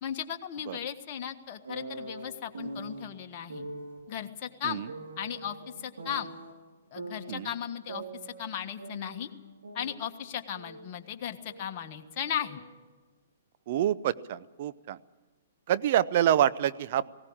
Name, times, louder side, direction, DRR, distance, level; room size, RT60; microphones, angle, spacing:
voice 1, 0.0-3.6 4.1-4.8 5.2-6.3 6.9-9.3 9.7-12.6, left 9 dB, 40° left, 4 dB, 1.5 m, -36 dB
sound 1, 1.7-3.0 3.5-4.0 4.9-6.5 7.0-8.5 8.8-10.9 11.2-12.8, right 2 dB, 80° right, 4.2 m, -43 dB
voice 2, 13.7-15.0 15.7-17.2, right 11 dB, 50° right, 15 dB, 0.7 m, -27 dB
19.0 x 17.0 x 8.8 m, 1.2 s
hypercardioid pair, 125°, 0 cm